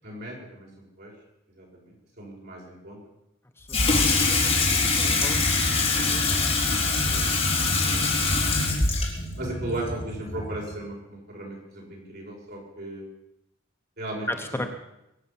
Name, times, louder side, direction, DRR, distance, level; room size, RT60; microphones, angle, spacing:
voice 1, 0.0-1.1 1.5-3.0 6.3-6.4 7.0-8.1 8.4-13.0 14.0-14.7, right 1 dB, 55° right, -2 dB, 6.5 m, -37 dB
voice 2, 3.6-4.4 4.7-5.5 5.8-6.2 14.3-14.7, left 1 dB, 10° left, 4 dB, 1.0 m, -36 dB
Water tap faucet / Sink (filling or washing), 3.7-10.7, left 3 dB, 30° left, 3.8 m, -24 dB
22.5 x 8.6 x 7.2 m, 0.86 s
head